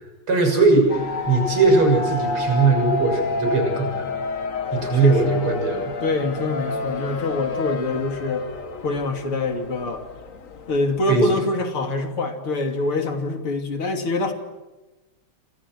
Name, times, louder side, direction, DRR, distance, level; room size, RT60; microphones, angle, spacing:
voice 1, 0.3-4.0 4.7-5.9 11.1-11.3, right 3 dB, 85° right, 3 dB, 7.5 m, -19 dB
sound 1, 0.9-11.0, left 3 dB, 40° left, 1.7 m, -29 dB
voice 2, 5.0-5.4 6.0-8.5 8.8-10.1 10.7-14.3, left 3 dB, 85° left, 5 dB, 3.8 m, -25 dB
29.0 x 26.0 x 6.3 m, 1.1 s
omnidirectional pair, 2.3 m